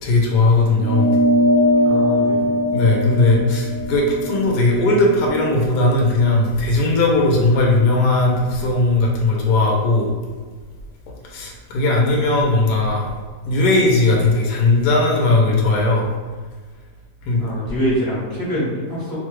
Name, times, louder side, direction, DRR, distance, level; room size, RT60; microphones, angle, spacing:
voice 1, 0.0-1.2 2.7-10.1 11.3-13.1 13.4-16.1 17.2-17.4, left 2 dB, 70° left, -1 dB, 1.0 m, -17 dB
sound 1, 0.8-5.6, equal, 70° right, 0.9 m, -20 dB
voice 2, 1.8-2.5 17.4-19.2, equal, 15° left, -10 dB, 0.8 m, -24 dB
3.1 x 2.2 x 3.1 m, 1.5 s
omnidirectional pair, 2.1 m